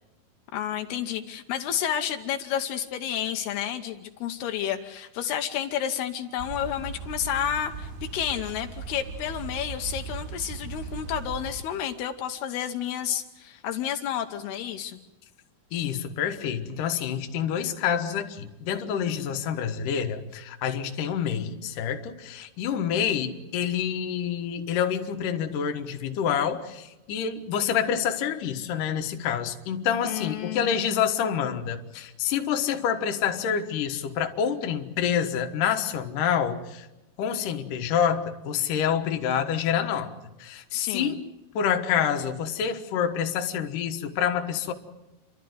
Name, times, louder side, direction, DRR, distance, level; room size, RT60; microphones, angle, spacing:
voice 1, 0.5-15.0 30.0-30.9 40.7-41.2, left 9 dB, 80° left, 5 dB, 3.0 m, -31 dB
sound 1, 6.4-11.6, right 5 dB, 80° right, 5.7 m, -38 dB
voice 2, 15.7-36.9 37.2-40.1 40.4-41.3 41.5-44.7, left 8 dB, 60° left, 4 dB, 2.7 m, -27 dB
30.0 x 12.5 x 9.4 m, 0.99 s
omnidirectional pair, 4.6 m